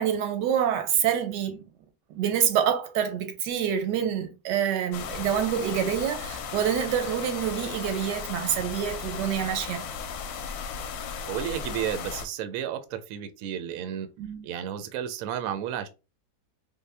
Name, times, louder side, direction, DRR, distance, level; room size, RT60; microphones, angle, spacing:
voice 1, 0.0-1.7 2.1-9.8 14.2-14.5, right 9 dB, 85° right, 1.3 m, -27 dB
sound 1, 4.9-12.3, left 6 dB, 75° left, 1.0 m, -36 dB
voice 2, 11.3-14.1 14.4-15.9, right 10 dB, 70° right, 0.9 m, -32 dB
3.6 x 2.1 x 3.3 m
omnidirectional pair, 1.8 m